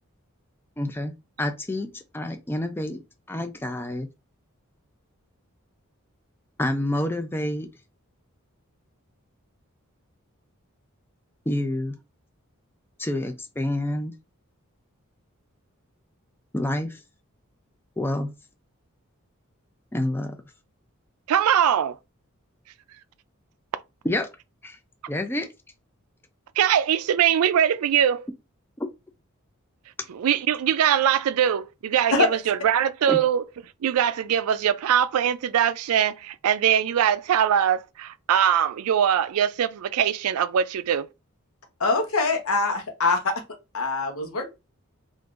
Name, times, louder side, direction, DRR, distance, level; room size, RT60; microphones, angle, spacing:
voice 1, 0.8-1.1 1.4-3.0 3.3-4.1 6.6-7.7 11.5-12.0 13.0-14.1 16.5-17.0 18.0-18.3 19.9-20.4 24.0-24.3 24.6-24.8 25.1-25.5 28.8-28.9 33.1-33.2, left 1 dB, 10° left, 0.4 m, -28 dB
voice 2, 21.3-22.0 26.6-28.3 30.1-32.1 32.5-33.4 33.8-41.1, right 9 dB, 90° right, 0.4 m, -22 dB
voice 3, 41.8-44.5, left 3 dB, 75° left, 0.9 m, -24 dB
3.7 x 2.5 x 2.4 m
head